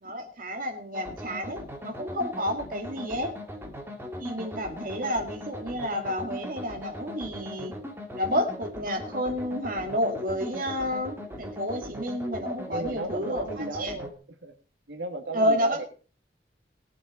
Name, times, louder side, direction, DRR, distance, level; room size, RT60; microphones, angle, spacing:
voice 1, 0.0-3.3 4.2-7.7 8.1-13.9 15.3-15.8, equal, 50° right, 4 dB, 2.2 m, -30 dB
sound 1, 0.9-14.1, left 1 dB, 15° right, 2.0 m, -39 dB
voice 2, 12.7-14.5 14.9-15.8, right 2 dB, 80° right, 5 dB, 1.8 m, -34 dB
18.5 x 7.8 x 4.3 m, 0.37 s
head